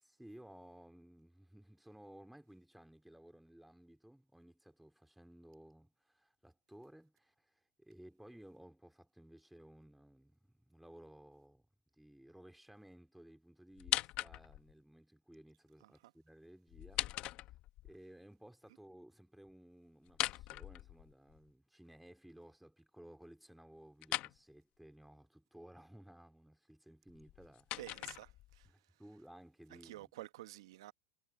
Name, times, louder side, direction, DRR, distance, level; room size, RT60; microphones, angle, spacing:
voice 1, 0.0-11.7 11.9-17.4 17.8-27.9 28.6-30.1, right 1 dB, ahead, 2.9 m, -58 dB
sound 1, 13.8-14.7 16.7-17.9 20.1-21.4 24.0-24.4 27.1-28.7, left 16 dB, 50° left, 1.2 m, -40 dB
voice 2, 27.8-28.3 29.8-30.9, right 16 dB, 85° right, 1.0 m, -49 dB
supercardioid pair, 125°, 3 cm